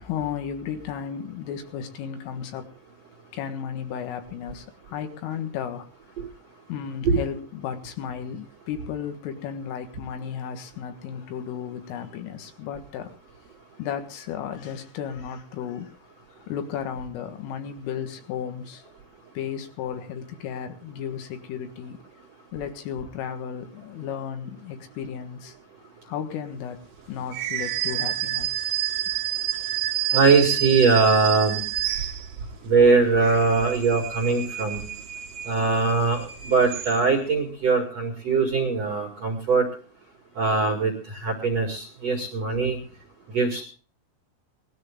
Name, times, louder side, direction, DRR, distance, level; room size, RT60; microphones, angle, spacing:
voice 1, 0.0-2.7 3.3-5.9 6.7-13.1 13.8-16.0 16.4-18.9 19.4-22.0 22.5-25.6 26.1-26.8 27.1-28.8 29.1-29.2 38.3-38.4, left 8 dB, 75° left, 4.1 m, -34 dB
sound 1, 27.3-32.6 33.0-37.3, right 13 dB, 80° right, 1.8 m, -30 dB
voice 2, 30.1-31.6 32.6-34.8 35.4-39.7 40.4-42.8 43.3-43.6, right 4 dB, 50° right, 2.0 m, -21 dB
19.5 x 13.0 x 3.6 m
omnidirectional pair, 5.9 m